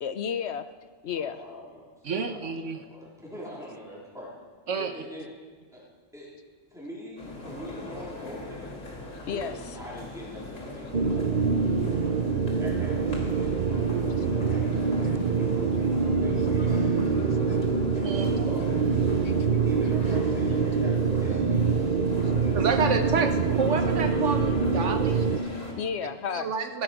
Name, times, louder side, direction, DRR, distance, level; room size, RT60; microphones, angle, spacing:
voice 1, 0.0-0.7 1.0-1.4 9.1-9.5 11.1-11.2 25.5-26.5, left 7 dB, 65° left, 11 dB, 0.9 m, -32 dB
voice 2, 1.1-4.3 4.7-5.3 5.7-5.8 6.1-6.3 6.7-8.8 9.3-11.6 12.6-17.6 17.9-19.0 19.5-22.6, equal, ahead, -6 dB, 3.8 m, -43 dB
voice 3, 2.0-2.8 4.7-4.9 15.0-15.2 18.0-18.4 22.5-25.3 26.3-26.8, right 5 dB, 70° right, 7 dB, 1.4 m, -29 dB
sound 1, 7.2-25.7, left 2 dB, 85° left, 3.3 m, -40 dB
sound 2, 10.9-25.4, right 5 dB, 45° right, 0.7 m, -25 dB
16.0 x 12.0 x 6.0 m, 1.4 s
omnidirectional pair, 1.3 m